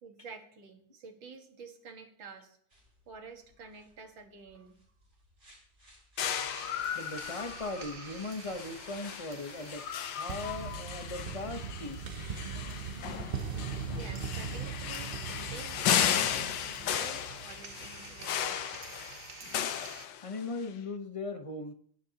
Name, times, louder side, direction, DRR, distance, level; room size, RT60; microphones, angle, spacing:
voice 1, 0.0-2.6 3.1-4.8 14.0-18.7, right 4 dB, 75° right, 4 dB, 2.4 m, -49 dB
sound 1, 2.7-14.5, equal, 30° right, 7.4 m, -61 dB
sound 2, 6.2-20.6, left 10 dB, 70° left, 1.4 m, -35 dB
sound 3, 6.2-20.0, right 6 dB, 55° right, 0.6 m, -42 dB
voice 2, 6.9-9.8 10.2-12.1 12.4-12.8 13.2-13.4 20.2-21.7, left 2 dB, 30° left, 6 dB, 0.6 m, -39 dB
23.5 x 11.0 x 2.9 m, 0.62 s
omnidirectional pair, 2.2 m